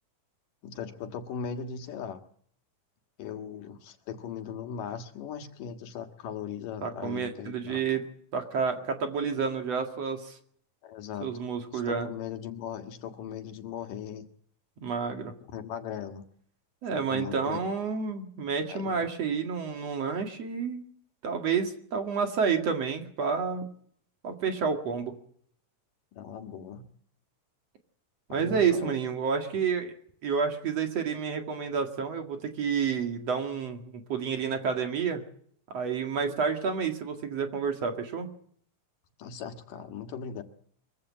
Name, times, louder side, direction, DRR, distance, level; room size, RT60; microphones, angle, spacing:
voice 1, 0.6-2.2 3.2-8.0 10.8-11.3 11.7-14.3 15.4-16.2 17.0-17.6 18.7-19.1 26.1-26.9 28.3-29.0 39.2-40.4, left 7 dB, 90° left, 6 dB, 3.4 m, -38 dB
voice 2, 6.8-8.0 8.3-10.4 11.2-12.1 14.8-15.3 16.8-20.8 21.2-23.6 24.2-25.1 28.3-29.9 30.2-35.2 35.7-38.3, right 6 dB, 55° right, 5 dB, 3.0 m, -29 dB
24.0 x 15.5 x 7.4 m, 0.64 s
omnidirectional pair, 3.7 m